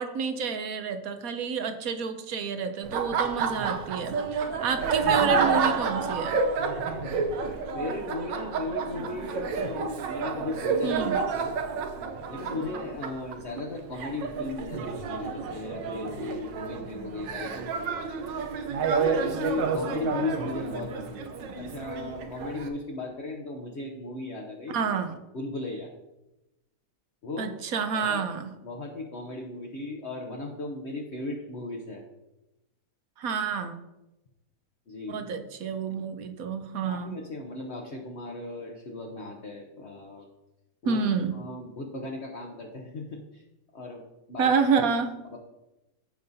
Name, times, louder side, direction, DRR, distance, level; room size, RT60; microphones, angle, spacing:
voice 1, 0.0-6.4 10.8-11.2 24.7-25.1 27.4-28.5 33.2-33.7 35.1-37.2 40.8-41.4 44.4-45.2, right 5 dB, 60° right, 8 dB, 1.0 m, -29 dB
Laughter, 2.8-22.7, right 5 dB, 80° right, 1.5 m, -30 dB
voice 2, 6.8-11.5 12.3-18.0 19.0-24.8 25.3-25.9 27.2-27.5 27.9-28.2 28.6-32.0 34.9-35.2 36.8-40.3 40.8-41.0 41.3-43.4 43.7-44.0 44.3-44.5 45.3-45.4, left 3 dB, 45° left, 0 dB, 1.0 m, -37 dB
15.5 x 5.4 x 2.7 m, 0.97 s
omnidirectional pair, 2.0 m